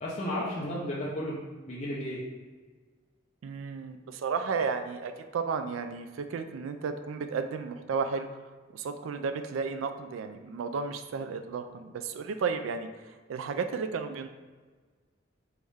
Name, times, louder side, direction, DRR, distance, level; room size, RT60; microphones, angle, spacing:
voice 1, 0.0-2.2, left 1 dB, 35° left, -7 dB, 0.7 m, -33 dB
voice 2, 3.4-8.3 8.7-14.3, right 5 dB, 85° right, 8 dB, 0.3 m, -33 dB
4.1 x 3.5 x 3.4 m, 1.4 s
head